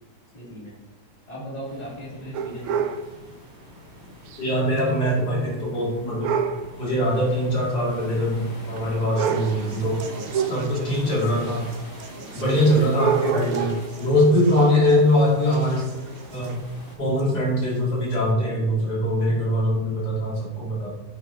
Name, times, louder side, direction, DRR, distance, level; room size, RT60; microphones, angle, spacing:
voice 1, 0.3-0.8 1.3-2.8 12.2-12.3, equal, 25° left, -6 dB, 2.8 m, -38 dB
sound 1, 1.6-17.0, left 1 dB, 60° left, 2.6 m, -45 dB
sound 2, 2.3-3.1 4.3-4.4 4.8-4.9 6.2-6.7 7.7-7.8 8.8-8.9 9.2-9.7 10.3-11.0 11.7-11.8 12.9-14.0 16.4-16.5 17.2-17.3 18.1-18.2, right 7 dB, 70° right, 1.0 m, -26 dB
voice 2, 4.4-6.3 6.8-10.0 10.4-11.7 12.3-15.9 16.3-16.6 17.0-21.0, equal, 80° left, -6 dB, 3.3 m, -22 dB
Conversation, 9.2-16.6, right 4 dB, 50° right, 0.7 m, -42 dB
9.2 x 8.6 x 2.9 m, 1.1 s
omnidirectional pair, 1.7 m